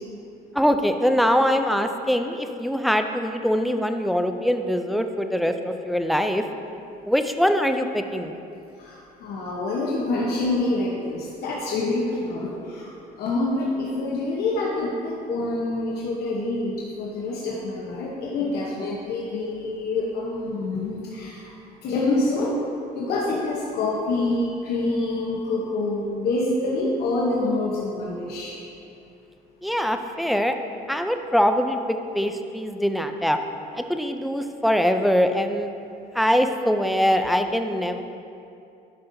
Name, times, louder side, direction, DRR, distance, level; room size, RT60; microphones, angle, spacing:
voice 1, 0.5-6.4 7.1-8.3 29.6-30.6 30.9-31.8 32.1-33.4 33.7-35.7 36.1-38.0, equal, ahead, 6 dB, 0.3 m, -23 dB
voice 2, 8.8-21.5 21.8-22.7 22.9-28.5, left 2 dB, 70° left, -4 dB, 0.9 m, -26 dB
9.9 x 5.4 x 2.6 m, 2.6 s
cardioid pair, 110°, 17 cm